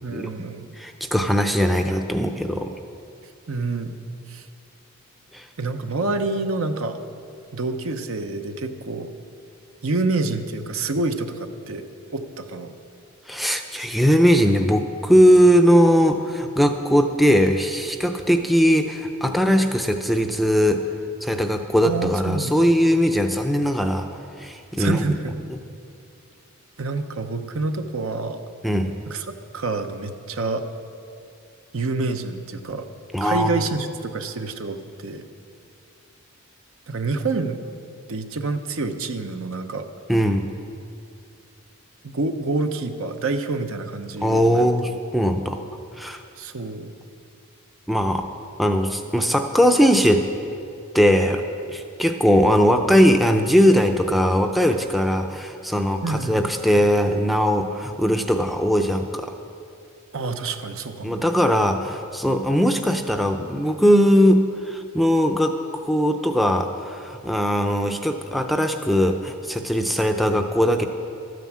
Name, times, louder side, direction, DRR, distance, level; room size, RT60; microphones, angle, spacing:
voice 1, 0.0-0.8 3.5-4.0 4.3-4.4 5.6-7.0 7.5-9.1 9.8-12.7 21.8-22.6 24.8-25.4 26.8-28.4 29.1-29.3 29.5-30.6 31.7-32.9 33.2-35.2 36.9-37.6 38.1-39.9 42.0-44.7 46.4-46.9 56.0-56.5 60.1-61.2, right 3 dB, 70° right, 7 dB, 0.8 m, -27 dB
voice 2, 0.8-2.7 5.3-5.5 13.3-20.8 21.2-24.1 24.4-25.0 25.5-25.6 28.6-28.9 33.1-33.6 40.1-40.5 44.2-45.6 46.0-46.2 47.9-48.3 48.6-50.3 50.9-51.4 51.7-59.3 61.0-65.5 65.8-70.9, equal, ahead, 5 dB, 0.5 m, -19 dB
13.0 x 9.3 x 7.4 m, 2.5 s
head